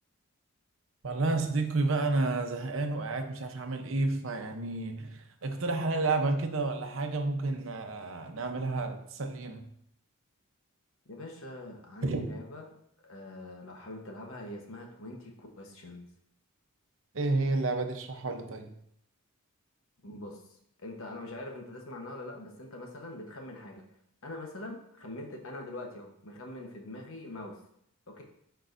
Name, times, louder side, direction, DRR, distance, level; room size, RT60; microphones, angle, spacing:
voice 1, 1.0-9.7 12.0-12.3 17.1-18.7, right 3 dB, 65° right, 5 dB, 0.8 m, -31 dB
voice 2, 11.1-12.7 13.0-16.1 20.0-20.4 20.8-23.8 24.2-27.6 28.1-28.2, left 1 dB, 65° left, 1 dB, 1.1 m, -43 dB
10.5 x 4.6 x 2.6 m, 0.71 s
head